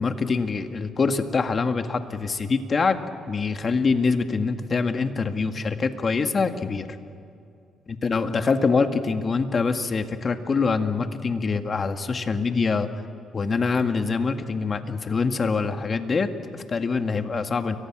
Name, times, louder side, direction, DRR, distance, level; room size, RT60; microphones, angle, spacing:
voice 1, 0.0-3.0 3.3-6.9 7.9-12.9 13.3-17.8, left 4 dB, 40° left, 7 dB, 2.0 m, -24 dB
29.5 x 24.0 x 6.2 m, 2.5 s
cardioid pair, 90°, 0 cm